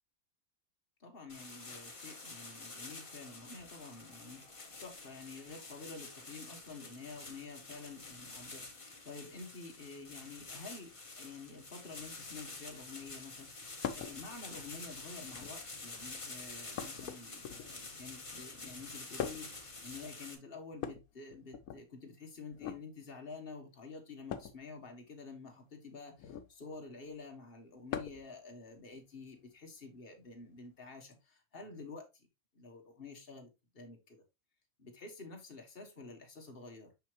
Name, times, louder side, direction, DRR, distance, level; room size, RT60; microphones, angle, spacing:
voice 1, 1.0-32.3 32.5-33.5 33.7-34.2 34.8-36.9, left 4 dB, 40° left, 1.6 m, -49 dB
sound 1, 1.3-20.4, left 3 dB, 25° left, 1.0 m, -48 dB
sound 2, 13.8-14.2 15.2-15.7 16.8-17.9 19.2-19.6 20.7-21.8 22.5-22.8 24.3-24.6 26.2-26.5 27.9-28.3 29.8-29.9 31.1-31.2, left 8 dB, 85° left, 1.2 m, -41 dB
5.9 x 5.5 x 3.0 m
omnidirectional pair, 1.5 m